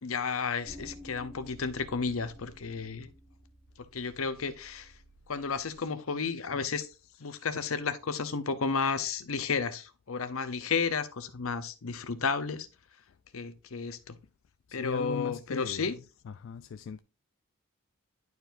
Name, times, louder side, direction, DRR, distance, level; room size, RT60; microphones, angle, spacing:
voice 1, 0.0-3.1 3.9-4.9 5.3-6.9 7.2-12.7 13.3-14.2 14.7-16.0, left 5 dB, 75° left, 0.7 m, -32 dB
sound 1, 0.6-5.7, equal, 30° right, 2.3 m, -52 dB
voice 2, 14.8-15.8 16.4-17.0, left 6 dB, 60° left, 0.3 m, -38 dB
10.5 x 4.7 x 2.6 m
head